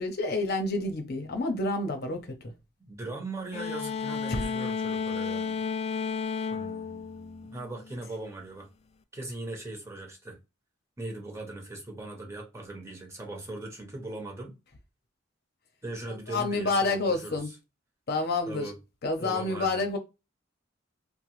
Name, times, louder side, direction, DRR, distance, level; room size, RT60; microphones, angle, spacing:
voice 1, 0.0-2.5 4.3-4.4 16.1-17.5 18.1-18.7 19.0-20.0, left 3 dB, 55° left, 0.7 m, -29 dB
voice 2, 2.9-5.6 6.5-8.7 9.1-10.4 11.0-14.5 15.8-17.4 18.5-18.8 19.2-19.8, right 2 dB, 15° right, 0.8 m, -39 dB
sound 1, 3.5-8.0, left 5 dB, 35° left, 0.3 m, -32 dB
3.0 x 2.1 x 3.0 m
head